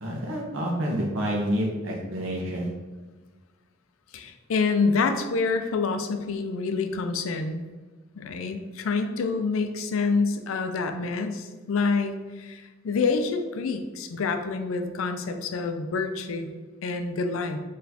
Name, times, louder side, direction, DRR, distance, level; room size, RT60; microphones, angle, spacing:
voice 1, 0.0-2.7, equal, 75° right, -2 dB, 1.0 m, -28 dB
voice 2, 4.1-7.6 8.2-16.5 16.8-17.6, left 4 dB, 90° left, 7 dB, 0.4 m, -27 dB
4.1 x 3.1 x 2.8 m, 1.3 s
head